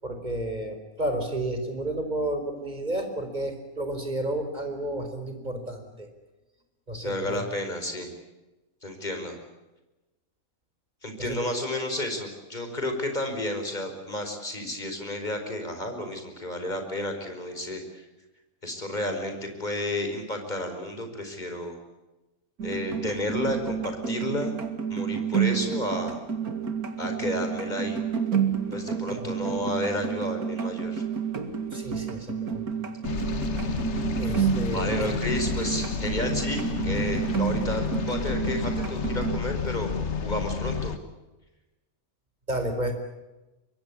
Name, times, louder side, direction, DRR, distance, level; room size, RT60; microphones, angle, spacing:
voice 1, 0.0-6.1 6.9-7.4 11.2-11.4 29.1-29.3 31.7-32.7 34.2-35.2 42.5-42.9, right 1 dB, 30° right, 6 dB, 4.8 m, -31 dB
voice 2, 7.0-8.1 8.8-9.4 11.0-18.1 18.6-21.8 22.6-24.5 24.9-26.2 27.0-28.0 28.7-31.0 34.7-39.9 40.2-40.9, left 1 dB, 30° left, 5 dB, 5.1 m, -31 dB
sound 1, 22.6-39.4, right 7 dB, 85° right, 2.5 m, -30 dB
sound 2, 33.0-41.0, left 5 dB, 50° left, 1.6 m, -30 dB
25.0 x 22.5 x 8.5 m, 1.1 s
omnidirectional pair, 1.5 m